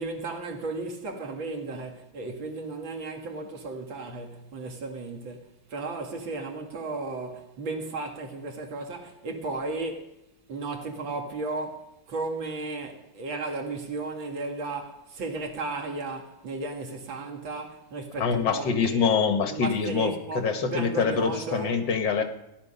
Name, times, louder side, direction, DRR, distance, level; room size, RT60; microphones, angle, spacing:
voice 1, 0.0-10.2 10.5-19.1 19.5-21.8, right 3 dB, 90° right, 2.6 m, -34 dB
voice 2, 18.2-22.2, left 6 dB, 75° left, 2.1 m, -25 dB
16.0 x 10.5 x 5.5 m
omnidirectional pair, 2.1 m